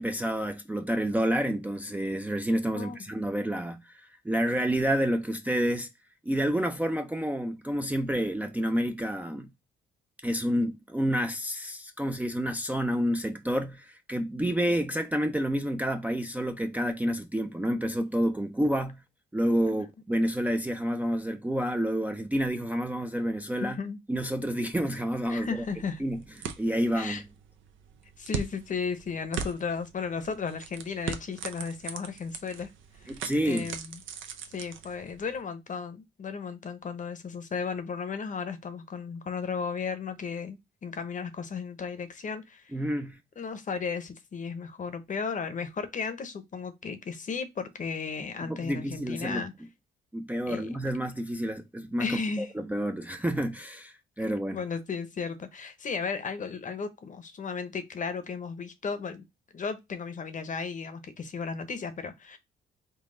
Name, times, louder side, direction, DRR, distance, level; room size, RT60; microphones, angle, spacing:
voice 1, 0.0-5.9 6.3-9.5 10.2-19.0 19.3-23.8 24.1-25.6 26.0-27.2 33.1-33.7 42.7-43.2 48.4-49.4 50.1-54.6, equal, 10° right, 0.4 m, -29 dB
voice 2, 23.6-24.0 25.3-26.0 26.9-27.2 28.2-32.7 33.0-34.0 34.5-42.7 43.4-49.5 50.5-50.7 52.0-52.5 54.5-59.2 59.5-62.4, left 5 dB, 40° left, 0.8 m, -35 dB
sound 1, 25.1-35.4, right 7 dB, 75° right, 0.7 m, -41 dB
3.9 x 2.3 x 3.6 m
cardioid pair, 90°, 20 cm